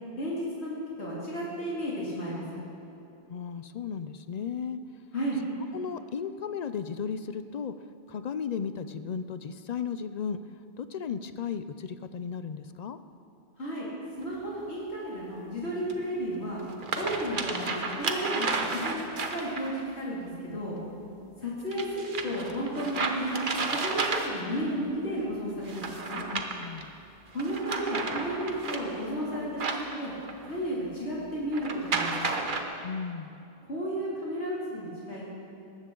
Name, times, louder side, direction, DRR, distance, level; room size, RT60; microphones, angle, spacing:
voice 1, 0.2-2.4 5.1-5.4 13.6-13.9 14.2-16.6 16.9-20.8 21.4-23.4 23.8-26.2 27.3-30.1 30.5-32.4 33.6-35.4, equal, 85° left, -6 dB, 3.0 m, -33 dB
voice 2, 3.3-4.8 5.7-7.7 8.1-10.4 10.8-13.0 26.3-26.9 32.8-33.3, left 7 dB, 55° left, 11 dB, 0.5 m, -35 dB
sound 1, 14.2-14.3 15.9-16.0 16.6-19.8 21.7-24.6 25.6-26.8 27.3-30.5 31.5-32.6, right 3 dB, 50° right, 1.2 m, -32 dB
19.0 x 14.5 x 3.8 m, 2.6 s
omnidirectional pair, 1.1 m